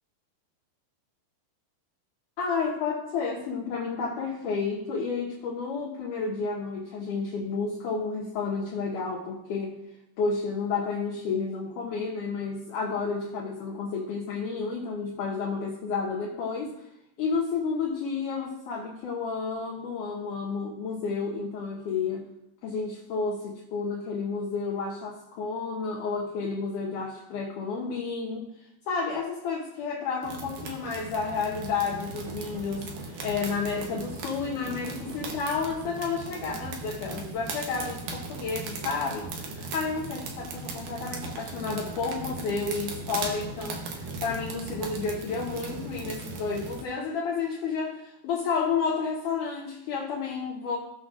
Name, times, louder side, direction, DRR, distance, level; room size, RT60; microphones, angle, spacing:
voice 1, 2.4-9.8 10.2-16.8 17.2-22.3 22.6-28.5 28.9-50.8, left 5 dB, 70° left, -4 dB, 2.0 m, -31 dB
sound 1, 30.2-46.8, right 3 dB, 70° right, 2.1 m, -38 dB
18.5 x 6.4 x 2.5 m, 0.86 s
omnidirectional pair, 5.2 m